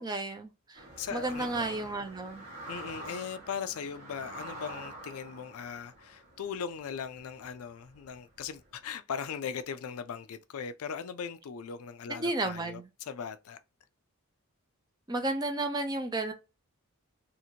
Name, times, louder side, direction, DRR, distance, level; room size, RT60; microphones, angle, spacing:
voice 1, 0.0-0.9 1.1-2.4 12.1-12.9 15.1-16.3, right 2 dB, 20° right, 0.4 m, -32 dB
sound 1, 0.7-8.8, right 1 dB, 45° right, 1.4 m, -47 dB
voice 2, 1.0-1.8 2.7-13.6, left 7 dB, 70° left, 0.4 m, -39 dB
2.8 x 2.4 x 2.7 m
head